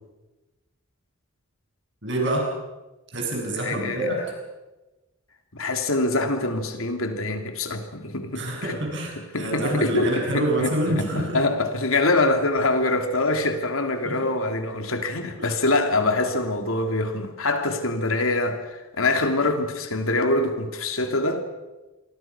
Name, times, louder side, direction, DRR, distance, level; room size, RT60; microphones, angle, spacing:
voice 1, 2.0-2.5 3.1-4.2 8.3-11.4 14.0-14.2 15.4-15.5, right 1 dB, 55° right, 7.2 m, -27 dB
voice 2, 3.6-4.2 5.5-8.9 9.3-21.4, left 2 dB, 80° left, 3.0 m, -24 dB
28.0 x 23.0 x 6.1 m
head